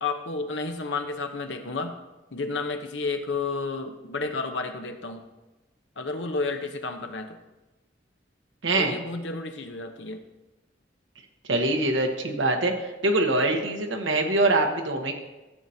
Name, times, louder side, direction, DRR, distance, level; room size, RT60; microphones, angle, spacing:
voice 1, 0.0-2.0 2.3-5.2 6.0-7.4 8.7-10.2, left 3 dB, 80° left, 6 dB, 0.9 m, -31 dB
voice 2, 8.6-8.9 11.5-15.1, right 2 dB, 90° right, 3 dB, 1.1 m, -24 dB
14.0 x 7.6 x 2.8 m, 1.1 s
head